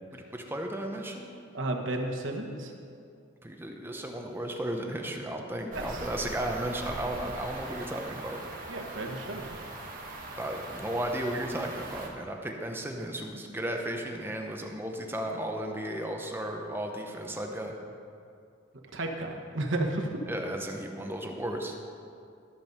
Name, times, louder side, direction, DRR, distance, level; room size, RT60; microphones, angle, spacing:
voice 1, 0.1-1.3 3.4-8.4 10.4-17.8 20.3-21.8, right 1 dB, 10° right, 2 dB, 0.8 m, -34 dB
voice 2, 1.5-2.7 5.7-6.0 8.7-9.5 18.9-20.1, right 2 dB, 80° right, 2 dB, 1.2 m, -32 dB
sound 1, 5.7-12.1, right 2 dB, 45° right, 1.4 m, -41 dB
13.5 x 5.3 x 6.6 m, 2.4 s
head